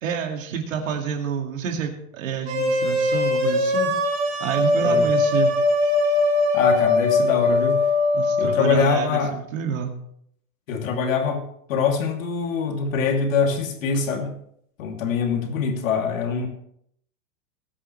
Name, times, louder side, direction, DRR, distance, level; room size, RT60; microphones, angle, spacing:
voice 1, 0.0-3.9 4.4-5.5 8.1-9.9, right 7 dB, 55° right, 3 dB, 2.2 m, -28 dB
sound 1, 2.4-8.6, left 2 dB, 20° right, 3.6 m, -21 dB
voice 2, 6.5-7.8 8.4-9.3 10.7-11.4 11.7-14.3 14.8-16.5, left 5 dB, 55° left, 3 dB, 2.8 m, -23 dB
21.0 x 9.8 x 3.2 m, 0.70 s
hypercardioid pair, 170°, 48 cm